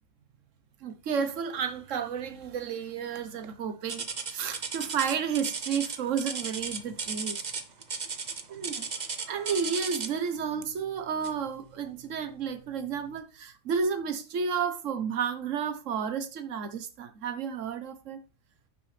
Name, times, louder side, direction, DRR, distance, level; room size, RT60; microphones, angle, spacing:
voice 1, 0.8-7.4 8.5-8.9 9.2-18.2, right 6 dB, 65° right, 1.4 m, -32 dB
sound 1, 3.9-10.3 11.2-11.5 12.0-12.1 12.8-12.9, right 5 dB, 35° right, 0.9 m, -35 dB
10.5 x 7.2 x 3.4 m
omnidirectional pair, 1.4 m